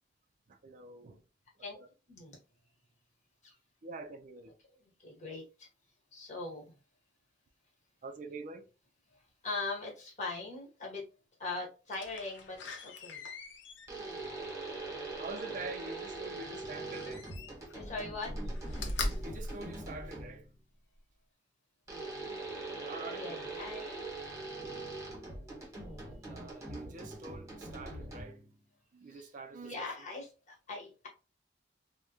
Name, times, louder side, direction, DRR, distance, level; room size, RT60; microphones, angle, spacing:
voice 1, 0.5-1.2 1.7-1.9 3.8-4.5 8.0-8.7 14.8-17.3 19.2-20.5 22.8-23.4 26.3-28.4 28.9-29.9, right 3 dB, 45° right, 0.4 m, -45 dB
voice 2, 4.7-5.7 6.1-6.7 9.4-11.0 11.4-12.6 12.8-13.2 17.7-18.3 23.0-24.1 29.1-29.3 29.6-31.1, left 3 dB, 40° left, 1.3 m, -41 dB
Slam, 11.9-15.8 16.9-17.8 18.2-20.5 21.0-21.1, left 2 dB, 75° left, 0.6 m, -41 dB
sound 1, 13.9-20.5 21.9-28.5, right 2 dB, 15° right, 1.3 m, -42 dB
3.4 x 2.2 x 2.7 m
head